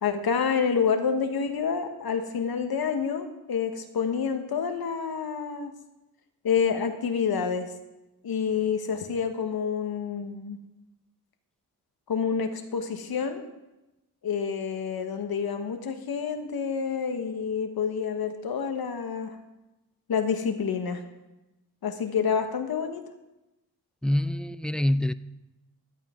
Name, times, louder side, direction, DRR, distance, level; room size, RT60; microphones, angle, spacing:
voice 1, 0.0-5.7 6.4-7.7 8.2-10.6 12.1-13.4 14.2-19.3 20.1-21.0 21.8-23.0, left 6 dB, 75° left, 1.5 m, -28 dB
voice 2, 24.0-25.1, left 1 dB, ahead, 0.3 m, -25 dB
15.5 x 11.5 x 3.8 m
wide cardioid pair, 95°, 37 cm